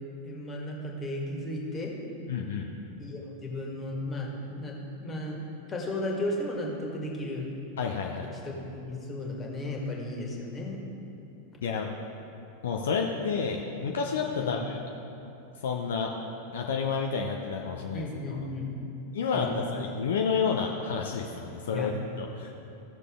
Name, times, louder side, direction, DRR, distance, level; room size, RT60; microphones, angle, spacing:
voice 1, 0.2-1.9 3.0-4.3 4.6-5.4 5.7-7.5 8.4-10.8 14.4-14.6 17.9-18.7 19.3-19.6 21.7-21.9, left 1 dB, 20° left, -1 dB, 1.8 m, -34 dB
voice 2, 2.3-2.7 7.8-8.3 11.6-11.9 12.6-14.8 15.6-16.1 16.5-18.1 19.1-21.9 22.2-22.5, left 5 dB, 60° left, 1 dB, 0.6 m, -30 dB
15.5 x 6.6 x 3.7 m, 2.8 s
figure-of-eight pair, 90°, 0 cm